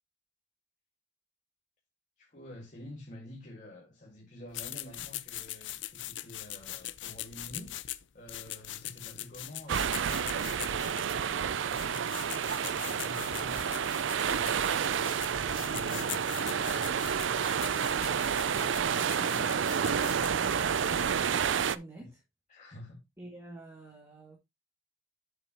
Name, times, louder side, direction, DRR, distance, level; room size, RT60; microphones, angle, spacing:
voice 1, 2.2-7.8 8.1-16.9 22.0-22.1 22.5-23.0, left 1 dB, 40° left, 2.0 m, -49 dB
sound 1, 4.5-21.2, left 13 dB, 65° left, 0.6 m, -42 dB
sound 2, 9.7-21.8, right 7 dB, 70° right, 0.5 m, -30 dB
voice 2, 18.5-20.6 20.9-22.2 23.2-24.4, right 1 dB, 15° right, 2.2 m, -47 dB
7.7 x 7.4 x 2.9 m
head